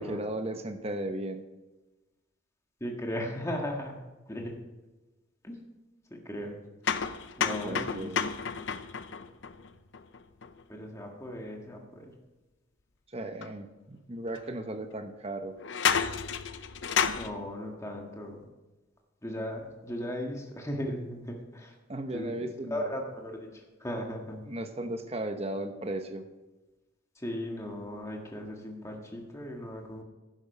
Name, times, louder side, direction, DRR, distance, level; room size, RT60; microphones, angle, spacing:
voice 1, 0.0-1.4 7.6-8.2 13.1-15.6 21.9-22.9 24.4-26.3, right 1 dB, 30° right, 7 dB, 0.9 m, -36 dB
voice 2, 2.8-4.0 4.3-4.5 5.4-5.5 6.1-6.6 7.4-8.1 10.7-12.0 17.1-18.4 19.2-21.7 22.1-24.4 27.2-30.0, equal, 15° left, 1 dB, 1.7 m, -37 dB
sound 1, 6.8-10.6 13.4-13.5 14.3-14.4 15.6-17.3, left 6 dB, 65° left, 0.6 m, -31 dB
11.5 x 10.5 x 5.4 m, 1.1 s
head